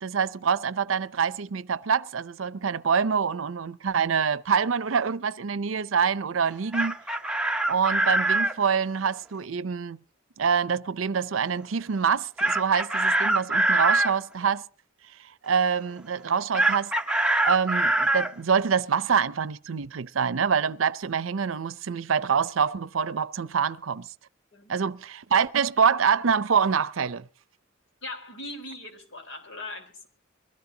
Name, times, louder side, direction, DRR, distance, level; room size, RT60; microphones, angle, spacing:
voice 1, 0.0-7.0 7.7-10.0 10.4-14.6 15.4-16.9 17.4-24.1 24.7-27.2, right 6 dB, 75° right, 0.6 m, -25 dB
Chicken rooster, 6.5-8.6 12.4-14.1 16.5-18.3, right 2 dB, 5° right, 0.9 m, -23 dB
voice 2, 28.0-30.1, left 2 dB, 65° left, 4.3 m, -39 dB
22.5 x 16.5 x 2.8 m
head